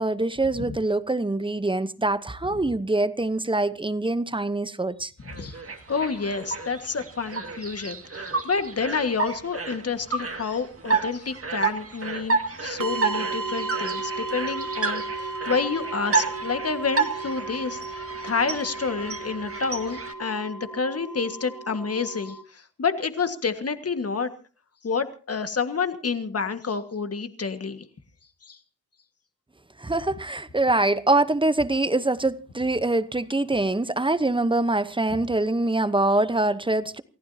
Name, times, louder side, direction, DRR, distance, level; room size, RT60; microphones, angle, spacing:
voice 1, 0.0-5.1 29.8-37.0, right 2 dB, 15° right, 0.9 m, -24 dB
sound 1, 5.2-20.1, right 4 dB, 45° right, 2.1 m, -31 dB
voice 2, 5.3-5.6 5.9-24.3 24.8-27.8 28.4-28.6, left 5 dB, 45° left, 1.7 m, -29 dB
sound 2, 12.8-22.4, right 3 dB, 85° right, 1.8 m, -34 dB
28.5 x 15.5 x 2.8 m
wide cardioid pair, 90°, 33 cm